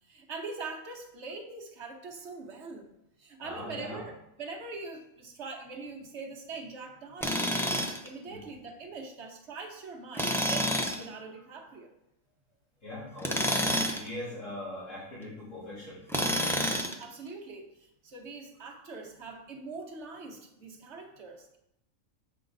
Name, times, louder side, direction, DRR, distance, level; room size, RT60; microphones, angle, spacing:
voice 1, 0.0-2.9 3.2-7.6 8.0-11.9 17.0-21.6, right 4 dB, 55° right, 1 dB, 1.1 m, -43 dB
voice 2, 3.4-4.1 8.3-8.4 12.8-16.1, left 1 dB, 65° left, -12 dB, 3.7 m, -41 dB
Tools, 7.2-8.1 10.1-11.0 13.2-14.1 16.1-17.0, equal, 5° left, 0.3 m, -28 dB
7.7 x 5.0 x 3.9 m, 0.83 s
omnidirectional pair, 1.4 m